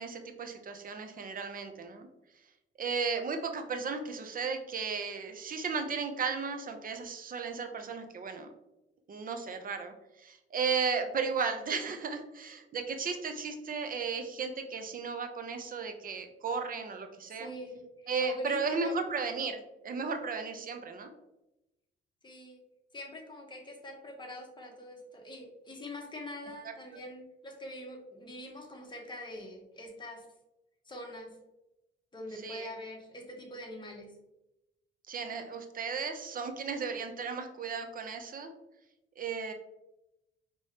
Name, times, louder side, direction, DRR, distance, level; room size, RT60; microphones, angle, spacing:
voice 1, 0.0-2.1 2.8-8.5 9.1-17.5 18.1-19.6 19.8-21.1 32.4-32.7 35.1-38.5 39.2-39.5, right 5 dB, 45° right, 6 dB, 0.7 m, -35 dB
voice 2, 17.3-19.0 20.6-20.9 22.2-22.6 22.9-30.3 30.8-31.3 32.1-34.1, left 1 dB, 25° left, 1 dB, 1.1 m, -44 dB
4.8 x 3.0 x 2.8 m, 0.93 s
cardioid pair, 90°, 20 cm